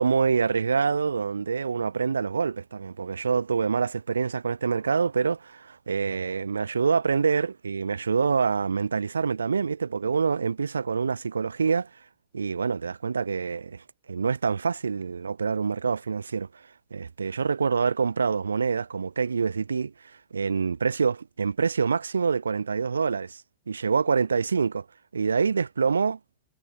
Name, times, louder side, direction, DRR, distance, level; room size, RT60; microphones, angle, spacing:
voice 1, 0.0-11.9 12.3-16.5 16.9-19.9 20.3-23.4 23.7-24.8 25.1-26.2, right 5 dB, 75° right, 0.7 m, -26 dB
figure-of-eight pair, 90°, 0 cm